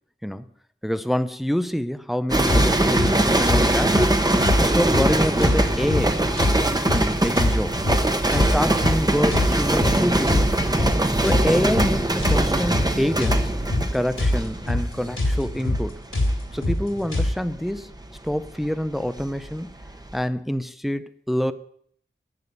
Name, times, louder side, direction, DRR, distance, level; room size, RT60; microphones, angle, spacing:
voice 1, 0.8-4.2 4.6-6.3 6.9-7.8 8.3-10.5 11.2-13.5 13.9-16.0 16.5-17.9 18.2-19.7 20.1-21.5, equal, ahead, 12 dB, 0.7 m, -26 dB
sound 1, 2.3-19.5 19.8-20.2, right 1 dB, 20° right, 1.2 m, -22 dB
sound 2, 2.5-17.3, left 1 dB, 75° left, 3.6 m, -25 dB
11.0 x 7.2 x 8.3 m, 0.64 s
wide cardioid pair, 60°, 21 cm